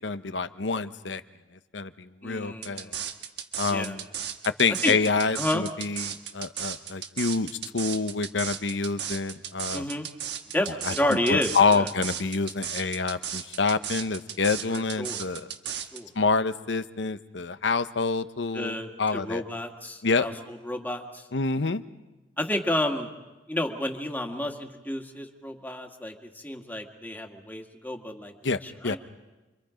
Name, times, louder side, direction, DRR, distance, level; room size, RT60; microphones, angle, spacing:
voice 1, 0.0-1.2 1.7-2.9 3.6-4.0 4.4-9.9 10.8-15.5 16.2-19.4 20.0-20.3 21.3-21.8 28.4-29.0, left 4 dB, 75° left, 12 dB, 0.9 m, -27 dB
voice 2, 2.2-3.0 3.6-4.0 4.8-5.0 5.4-5.7 9.7-10.1 10.5-11.9 14.7-15.2 15.9-16.1 18.5-21.3 22.4-23.1 23.5-29.0, left 1 dB, 10° left, 3 dB, 1.9 m, -31 dB
sound 1, 2.6-16.0, right 9 dB, 70° right, 1.6 m, -35 dB
28.5 x 24.5 x 5.1 m, 1.1 s
head